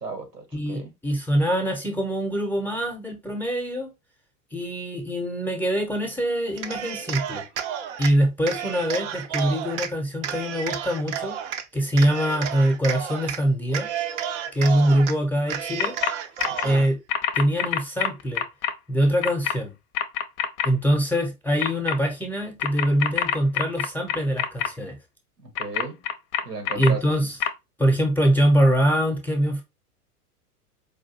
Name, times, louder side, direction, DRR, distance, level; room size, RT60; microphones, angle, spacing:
voice 1, 0.0-0.9 16.5-16.9 25.6-26.0 26.4-27.0, right 4 dB, 90° right, 1.7 m, -35 dB
voice 2, 0.5-3.9 4.5-7.4 8.0-11.4 11.7-13.9 14.5-16.0 16.6-17.0 17.3-18.4 18.9-19.7 20.6-25.0 26.8-27.4 27.8-29.6, right 1 dB, 5° left, 0.8 m, -23 dB
Cheering, 6.5-8.1 8.5-9.9 10.2-11.6 12.0-13.4 13.7-15.1 15.5-16.9, right 9 dB, 50° right, 0.7 m, -31 dB
sound 1, 15.8-16.1 16.4-16.7 17.1-18.7 19.2-19.5 19.9-20.7 21.6-21.9 22.6-24.7 25.6-26.9 27.4-27.5, left 9 dB, 40° left, 0.6 m, -25 dB
4.7 x 2.6 x 2.8 m
figure-of-eight pair, 95°, 47 cm